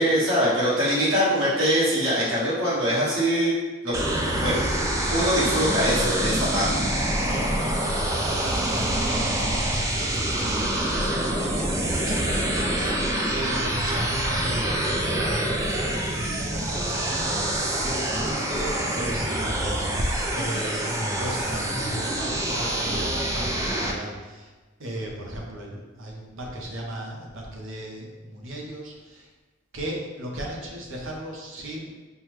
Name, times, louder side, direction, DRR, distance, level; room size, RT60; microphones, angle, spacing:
voice 1, 0.0-3.5 3.8-4.0 4.3-4.6 4.9-6.7, equal, 90° right, -8 dB, 1.4 m, -23 dB
sound 1, 3.9-23.9, right 1 dB, 15° right, 0.3 m, -26 dB
voice 2, 7.2-10.6 10.9-13.0 13.3-14.8 15.0-24.5 24.8-29.3 29.7-31.9, right 1 dB, 70° right, -1 dB, 0.8 m, -36 dB
5.4 x 2.2 x 3.1 m, 1.3 s
head